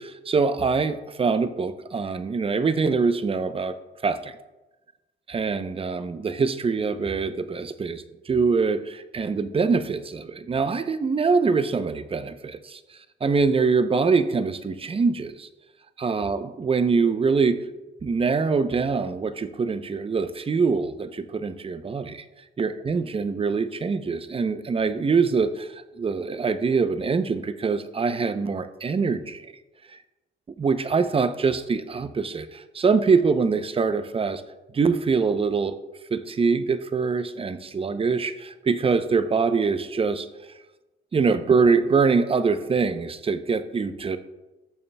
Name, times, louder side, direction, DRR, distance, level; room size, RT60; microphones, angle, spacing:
voice 1, 0.0-3.8 4.0-4.4 5.3-12.8 13.2-15.5 16.0-17.6 18.0-22.2 22.6-29.5 30.6-34.4 34.7-35.8 36.1-40.3 41.1-44.2, right 5 dB, 30° right, 11 dB, 0.6 m, -24 dB
14.0 x 7.0 x 2.2 m, 1.1 s
cardioid pair, 90°, 20 cm